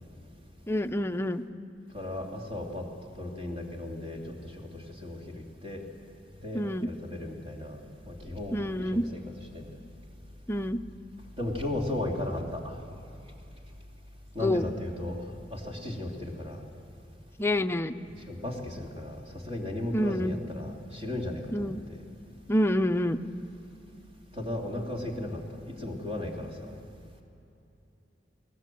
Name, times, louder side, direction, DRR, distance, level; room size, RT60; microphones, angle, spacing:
voice 1, 0.7-1.4 6.5-6.9 8.5-9.0 10.5-10.8 14.4-14.7 17.4-17.9 19.9-20.3 21.5-21.8 22.5-23.2, left 1 dB, 15° left, 8 dB, 0.5 m, -27 dB
voice 2, 1.9-2.9 3.1-5.8 6.4-7.8 8.1-9.2 9.5-9.7 11.4-12.8 14.3-15.2 15.5-16.6 18.1-19.2 19.5-22.0 24.4-25.4 25.7-26.7, left 1 dB, 35° right, 0 dB, 2.8 m, -35 dB
21.5 x 18.5 x 7.6 m, 2.8 s
head